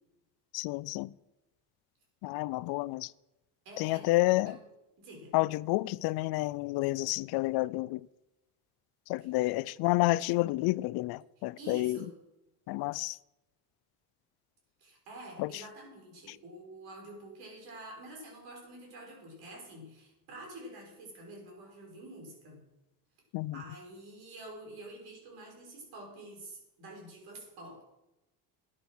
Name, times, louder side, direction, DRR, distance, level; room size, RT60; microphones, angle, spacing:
voice 1, 0.5-1.1 2.2-3.1 3.8-4.6 5.3-8.1 9.1-12.0 12.7-13.2 15.4-15.6 23.3-23.6, left 20 dB, 75° left, 0.5 m, -30 dB
voice 2, 3.6-4.1 4.4-4.6 5.0-5.3 11.6-12.1 14.8-22.6 23.5-27.8, right 1 dB, 75° right, 5.6 m, -47 dB
12.5 x 10.0 x 6.2 m
cardioid pair, 120°, 38 cm